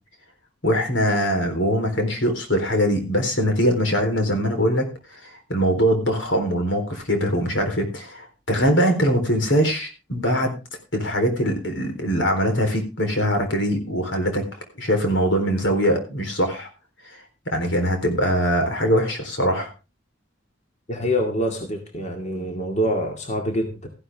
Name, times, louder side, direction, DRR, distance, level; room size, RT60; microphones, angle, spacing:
voice 1, 0.6-10.6 10.9-14.4 14.8-16.7 17.1-19.7, equal, 75° left, 5 dB, 4.1 m, -22 dB
voice 2, 20.9-23.9, equal, 40° left, 3 dB, 2.3 m, -25 dB
14.5 x 11.5 x 3.6 m, 0.30 s
head